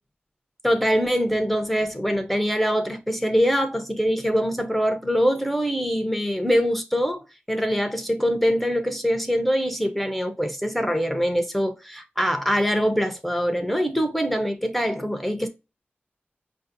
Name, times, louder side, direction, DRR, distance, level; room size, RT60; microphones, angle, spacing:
voice 1, 0.6-7.2 7.5-15.5, equal, 5° left, 0.6 m, -23 dB
4.9 x 2.6 x 2.6 m
wide cardioid pair, 105°, 4 cm